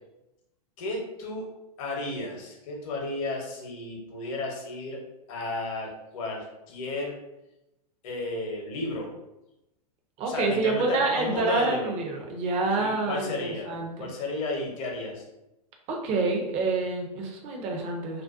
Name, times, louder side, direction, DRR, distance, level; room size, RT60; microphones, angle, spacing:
voice 1, 0.8-1.4 1.8-5.0 5.3-7.1 8.0-9.1 10.3-11.8 12.8-15.2, left 2 dB, 55° left, 0 dB, 0.8 m, -33 dB
voice 2, 10.2-13.3 13.6-14.1 15.9-18.2, right 3 dB, 30° right, 2 dB, 0.5 m, -27 dB
2.4 x 2.2 x 2.4 m, 0.92 s
hypercardioid pair, 115°, 21 cm